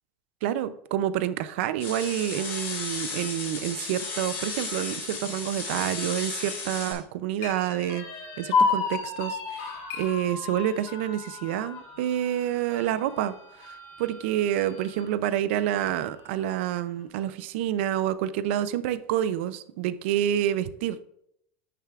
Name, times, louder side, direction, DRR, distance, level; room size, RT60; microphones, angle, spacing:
voice 1, 0.4-8.1 8.4-13.3 13.6-21.0, right 11 dB, 80° right, 0.4 m, -28 dB
sound 1, 1.8-6.9, left 4 dB, 40° left, 2.9 m, -34 dB
sound 2, 6.7-10.9, left 8 dB, 60° left, 1.4 m, -47 dB
sound 3, 7.4-15.1 15.5-15.6 16.0-16.7, left 4 dB, 90° left, 2.8 m, -32 dB
10.5 x 6.8 x 2.4 m
supercardioid pair, 150°, 6 cm